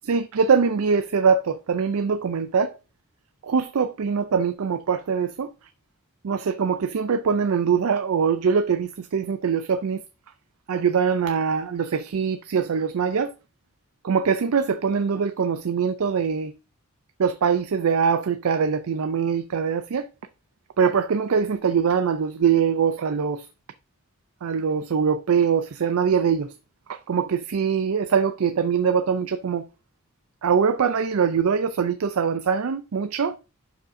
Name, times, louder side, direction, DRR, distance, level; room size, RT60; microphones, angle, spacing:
voice 1, 0.0-2.7 3.4-5.5 6.2-10.0 10.7-13.3 14.0-16.5 17.2-20.1 20.8-23.5 24.4-26.5 26.9-29.7 30.4-33.4, right 6 dB, 70° right, 0.4 m, -23 dB
11.0 x 5.0 x 2.6 m
head